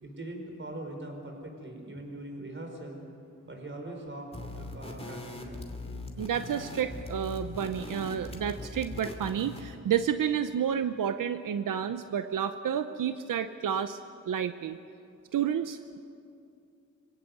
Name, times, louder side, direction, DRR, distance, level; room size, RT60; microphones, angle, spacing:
voice 1, 0.0-3.0 3.5-5.7, right 1 dB, 40° right, 2 dB, 5.0 m, -41 dB
sound 1, 4.3-9.8, left 2 dB, 20° left, 2.7 m, -41 dB
voice 2, 6.2-14.0 14.3-14.8 15.3-16.0, right 8 dB, 85° right, 9 dB, 0.7 m, -30 dB
26.0 x 17.0 x 7.9 m, 2.5 s
wide cardioid pair, 95°, 31 cm